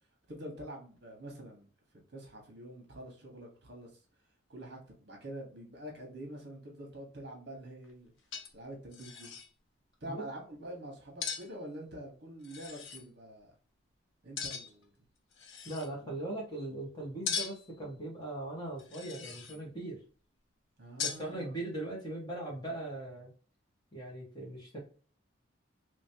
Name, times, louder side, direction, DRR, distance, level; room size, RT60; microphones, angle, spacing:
voice 1, 0.3-1.7 2.1-3.9 4.5-4.8 5.1-8.1 8.5-9.4 10.0-13.5 14.2-14.9 16.0-16.2 20.8-21.6, right 1 dB, 55° right, 1.3 m, -46 dB
sound 1, 7.8-7.9 8.3-8.7 8.9-9.5 11.2-11.5 12.4-13.0 14.4-14.8 15.3-15.9 17.3-17.7 18.8-19.6 21.0-21.3, left 6 dB, 75° left, 0.7 m, -39 dB
voice 2, 15.6-20.0 21.0-23.3 23.9-24.8, right 2 dB, 20° left, 1.3 m, -40 dB
3.1 x 3.0 x 2.8 m
head